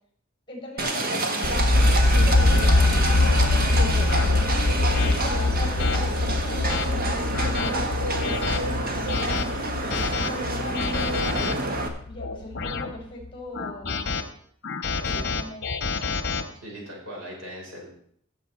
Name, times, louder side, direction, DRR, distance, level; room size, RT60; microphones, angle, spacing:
voice 1, 0.5-4.5 5.0-10.0 10.3-11.5 12.0-14.2 15.0-15.7 15.9-16.1, left 1 dB, 25° left, 1 dB, 5.0 m, -40 dB
Livestock farm animals working animals, 0.8-11.9, right 2 dB, 45° right, 1.4 m, -28 dB
sound 1, 1.4-13.3, left 2 dB, 70° left, 0.8 m, -23 dB
sound 2, 2.4-2.6 3.2-3.4 4.1-4.3 4.9-5.1 5.8-6.0 6.5-6.9 7.3-7.7 8.2-8.6 9.1-9.5 9.9-10.3 10.7-11.5 12.2-12.9 13.5-14.2 14.6-16.4, left 4 dB, 55° left, 1.3 m, -29 dB
voice 2, 14.9-15.3 16.6-17.9, equal, 75° right, -3 dB, 5.3 m, -39 dB
15.5 x 7.4 x 4.5 m, 0.63 s
head